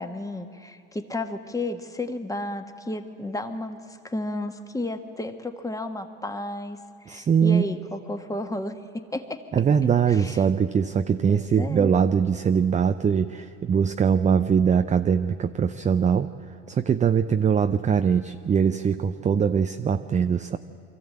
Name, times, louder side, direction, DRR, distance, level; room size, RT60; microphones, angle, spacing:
voice 1, 0.0-9.4 10.1-10.4 11.3-11.9, left 1 dB, 10° left, 7 dB, 1.4 m, -33 dB
voice 2, 7.1-7.6 9.5-16.3 16.7-20.6, right 7 dB, 20° right, 9 dB, 0.5 m, -22 dB
23.5 x 14.0 x 8.7 m, 2.5 s
supercardioid pair, 95°, 37 cm